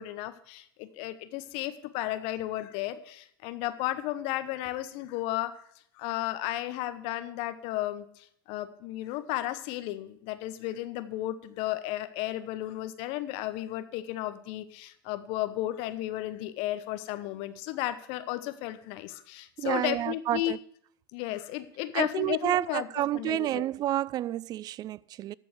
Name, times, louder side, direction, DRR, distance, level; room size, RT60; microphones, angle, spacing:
voice 1, 0.0-5.5 6.0-20.5 21.1-22.9 23.1-23.6, left 15 dB, 55° left, 1.0 m, -34 dB
voice 2, 19.6-20.6 21.9-25.3, right 13 dB, 35° right, 0.3 m, -30 dB
13.5 x 4.6 x 7.8 m
hypercardioid pair, 90°, 12 cm